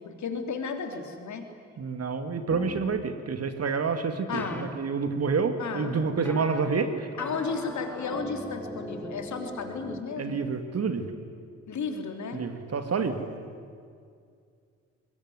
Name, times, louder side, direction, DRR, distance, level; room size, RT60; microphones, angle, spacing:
voice 1, 0.0-1.5 4.3-4.7 5.6-6.2 7.2-10.4 11.7-12.4, left 5 dB, 45° left, 5 dB, 3.2 m, -34 dB
voice 2, 1.8-7.1 10.2-11.1 12.3-13.2, right 5 dB, 35° right, 8 dB, 2.3 m, -28 dB
sound 1, 2.5-2.9 4.4-4.6 6.3-6.6 7.2-10.0, left 1 dB, 5° left, 2.5 m, -39 dB
23.5 x 22.5 x 9.6 m, 2.2 s
figure-of-eight pair, 45°, 41 cm